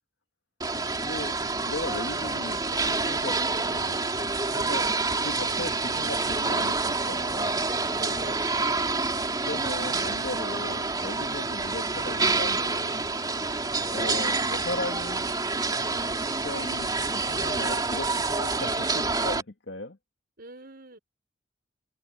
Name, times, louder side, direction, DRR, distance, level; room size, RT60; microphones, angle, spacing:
sound 1, 0.6-19.4, right 3 dB, 20° right, 3.1 m, -28 dB
voice 1, 1.0-4.9 5.2-7.6 9.4-13.1 13.9-15.3 16.4-20.0, left 2 dB, 80° left, 1.9 m, -37 dB
voice 2, 4.4-5.0 7.9-8.5 13.9-14.2 20.4-21.0, right 1 dB, 55° right, 5.4 m, -44 dB
head